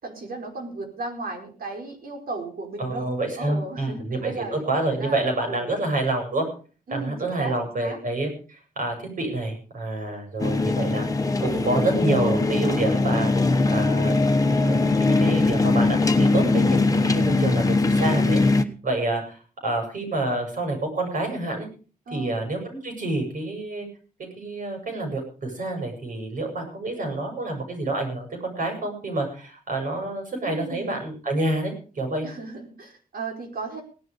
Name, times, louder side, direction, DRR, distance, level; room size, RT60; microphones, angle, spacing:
voice 1, 0.0-3.1 3.4-5.7 6.9-8.0 17.2-17.6 22.1-22.4 30.4-30.9 32.2-33.8, right 3 dB, 90° right, 2 dB, 4.8 m, -35 dB
voice 2, 2.8-6.5 6.9-11.1 11.4-14.2 14.6-18.4 18.8-21.7 22.1-23.9 24.4-32.3, right 2 dB, 65° right, 3 dB, 7.6 m, -28 dB
sound 1, 10.4-18.6, left 3 dB, 25° left, 1.1 m, -21 dB
17.5 x 11.5 x 5.2 m, 0.38 s
wide cardioid pair, 160°, 15 cm